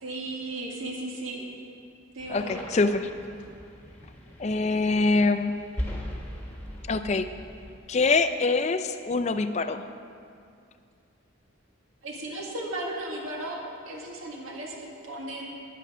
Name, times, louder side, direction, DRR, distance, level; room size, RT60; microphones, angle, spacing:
voice 1, 0.0-1.4 2.1-2.6 12.0-15.5, right 1 dB, 75° right, -1 dB, 1.9 m, -35 dB
sound 1, 2.2-7.8, equal, 10° left, 1.4 m, -39 dB
voice 2, 2.3-3.1 4.4-5.6 6.9-7.3 7.9-9.9, left 3 dB, 30° left, 10 dB, 0.4 m, -24 dB
10.0 x 9.2 x 6.2 m, 2.4 s
head